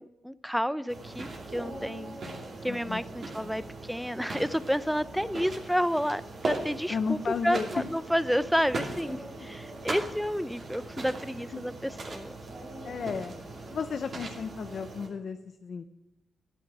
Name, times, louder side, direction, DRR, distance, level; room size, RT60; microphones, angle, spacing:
voice 1, 0.0-2.2 2.6-7.2 7.4-12.3, equal, ahead, 16 dB, 0.5 m, -30 dB
sound 1, 0.9-15.1, right 2 dB, 55° right, 2.5 m, -40 dB
Dog, 1.5-3.1 5.2-5.7 6.5-6.6 8.7-10.0 12.4-13.4, right 1 dB, 85° right, 3.3 m, -46 dB
voice 2, 2.7-3.0 3.4-3.6 6.9-7.9 9.4-9.5 11.5-11.6 12.8-15.9, left 6 dB, 60° left, 9 dB, 0.6 m, -34 dB
11.5 x 9.2 x 4.8 m, 1.0 s
cardioid pair, 65°, 0 cm